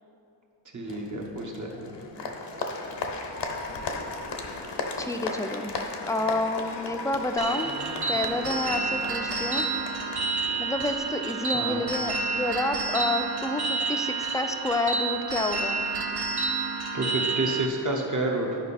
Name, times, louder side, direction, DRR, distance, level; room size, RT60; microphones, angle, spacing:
voice 1, 0.7-1.7 11.5-11.8 16.9-18.6, right 2 dB, 45° right, 0 dB, 1.2 m, -29 dB
Applause, 0.9-11.0, left 3 dB, 80° left, 0.8 m, -36 dB
voice 2, 5.0-5.7 6.0-7.7 8.1-9.7 10.6-15.8, left 2 dB, 10° left, 6 dB, 0.4 m, -29 dB
sound 1, 7.4-17.7, right 4 dB, 65° right, 0.7 m, -29 dB
10.5 x 5.2 x 4.2 m, 2.7 s
wide cardioid pair, 85°, 42 cm